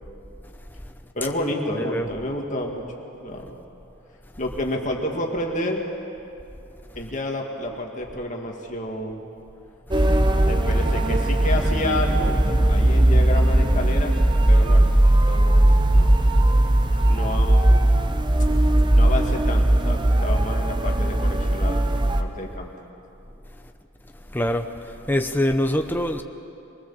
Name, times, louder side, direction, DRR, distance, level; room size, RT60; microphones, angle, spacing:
voice 1, 1.1-2.8 3.2-3.6 4.4-5.8 7.0-9.2 10.5-12.4 12.7-14.2 14.5-14.9 15.2-16.4 17.0-17.9 18.9-22.7, left 1 dB, 35° left, 2.2 m, -30 dB
voice 2, 1.7-2.1 24.3-24.7 25.1-26.2, left 1 dB, 10° left, 0.9 m, -23 dB
sound 1, 9.9-22.2, right 1 dB, 20° right, 0.8 m, -18 dB
24.0 x 19.5 x 7.2 m
head